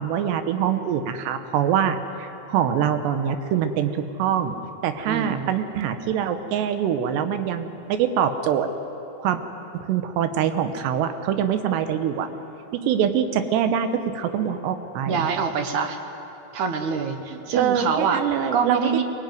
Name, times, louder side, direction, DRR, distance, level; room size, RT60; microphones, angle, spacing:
voice 1, 0.0-2.0 2.5-4.5 4.8-8.7 9.2-9.4 9.7-12.3 12.7-15.3 17.6-19.0, right 9 dB, 85° right, 8 dB, 3.3 m, -24 dB
voice 2, 5.0-5.5 15.1-16.0 16.5-18.2 18.5-19.0, right 6 dB, 65° right, 6 dB, 2.0 m, -25 dB
23.5 x 19.5 x 9.4 m, 2.9 s
omnidirectional pair, 4.8 m